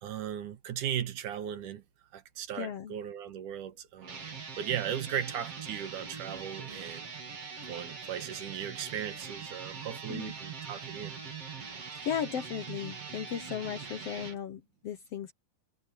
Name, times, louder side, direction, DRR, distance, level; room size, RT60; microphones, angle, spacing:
voice 1, 0.0-1.8 2.1-4.3 4.6-7.1 7.7-11.2, right 9 dB, 75° right, 2.9 m, -37 dB
voice 2, 2.6-2.9 10.1-10.3 12.0-15.3, left 9 dB, 65° left, 1.6 m, -36 dB
sound 1, 4.0-14.4, right 5 dB, 45° right, 4.4 m, -42 dB
omnidirectional pair, 3.7 m